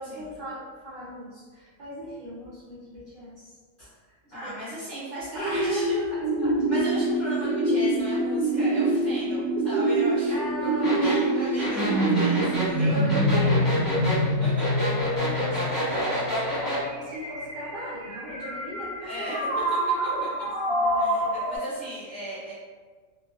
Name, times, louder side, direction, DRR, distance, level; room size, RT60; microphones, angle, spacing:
voice 1, 0.0-4.1 4.4-4.5 5.3-6.9 7.3-7.5 10.3-11.5 12.8-21.8, equal, 60° right, -10 dB, 0.5 m, -38 dB
voice 2, 4.3-5.9 6.7-10.3 10.6-13.0 14.4-14.5 19.0-19.5 21.0-22.5, equal, 50° left, -11 dB, 0.5 m, -37 dB
sound 1, 5.4-21.6, right 1 dB, 85° right, 1.1 m, -26 dB
sound 2, 10.8-16.8, equal, 15° left, 0.9 m, -29 dB
2.3 x 2.3 x 2.2 m, 1.5 s
omnidirectional pair, 1.5 m